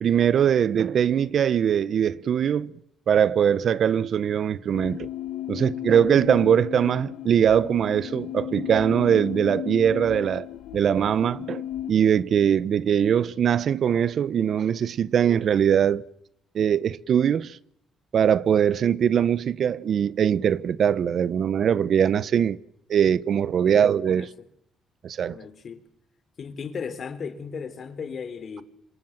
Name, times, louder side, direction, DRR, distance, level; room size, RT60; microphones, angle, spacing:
voice 1, 0.0-2.7 3.1-5.1 5.5-10.5 10.7-11.6 11.9-16.1 16.5-17.6 18.1-22.6 22.9-24.3 25.0-25.4, right 8 dB, 60° right, 1.0 m, -21 dB
sound 1, 4.7-11.9, left 12 dB, 85° left, 1.2 m, -35 dB
voice 2, 23.7-24.3 25.3-25.8 26.4-28.6, left 6 dB, 50° left, 3.5 m, -36 dB
27.0 x 26.5 x 7.4 m
cardioid pair, 90°, 0 cm